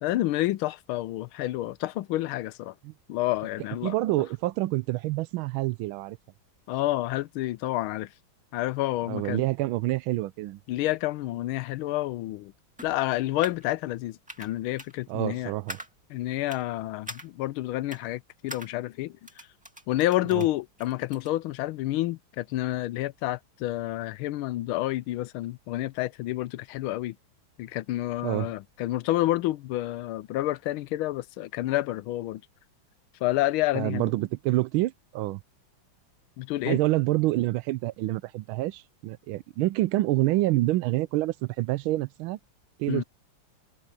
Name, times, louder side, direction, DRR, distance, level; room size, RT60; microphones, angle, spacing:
voice 1, 0.0-2.7 3.1-3.9 6.7-8.1 8.5-9.4 10.7-12.5 12.8-15.5 16.1-19.2 19.9-27.2 27.6-32.4 33.2-34.1 36.4-36.8 42.9-43.0, left 16 dB, 85° left, 1.5 m, -29 dB
voice 2, 3.8-6.2 9.1-10.6 15.1-15.8 20.3-20.5 28.2-28.5 33.7-35.4 36.6-42.4 42.8-43.0, right 17 dB, 85° right, 1.4 m, -27 dB
sound 1, 12.8-13.6 14.3-14.5 14.8-14.9 15.7-15.9 16.5-16.6 17.1-17.3 17.9-18.0 18.5-18.7 19.2-20.5 20.8-21.3, equal, 5° right, 2.2 m, -42 dB
omnidirectional pair, 2.2 m